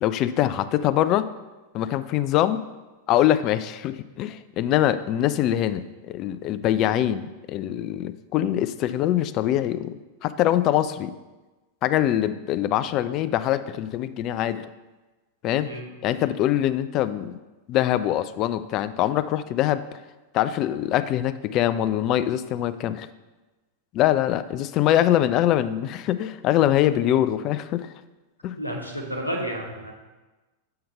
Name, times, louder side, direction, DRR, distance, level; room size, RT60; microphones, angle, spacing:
voice 1, 0.0-1.3 1.7-2.6 3.1-9.9 10.2-11.1 11.8-14.7 15.4-15.7 16.0-17.4 17.7-20.0 20.3-23.1 23.9-27.9 28.4-28.6, left 12 dB, 35° left, 12 dB, 0.3 m, -23 dB
voice 2, 28.6-29.9, equal, 90° left, 1 dB, 1.0 m, -31 dB
6.7 x 3.8 x 5.4 m, 1.2 s
figure-of-eight pair, 90°, 0 cm